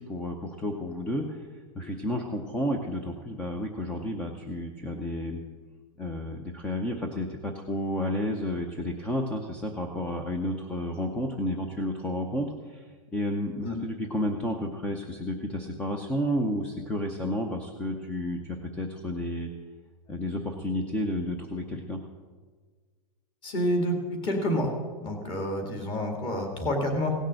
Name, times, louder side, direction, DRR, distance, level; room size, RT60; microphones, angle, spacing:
voice 1, 0.0-1.5 1.7-5.4 6.0-19.5 20.1-22.0, left 1 dB, 5° left, 3 dB, 0.6 m, -31 dB
voice 2, 23.4-24.7 25.0-27.1, equal, 25° left, 3 dB, 2.2 m, -28 dB
16.5 x 6.5 x 7.6 m, 1.5 s
supercardioid pair, 165°, 19 cm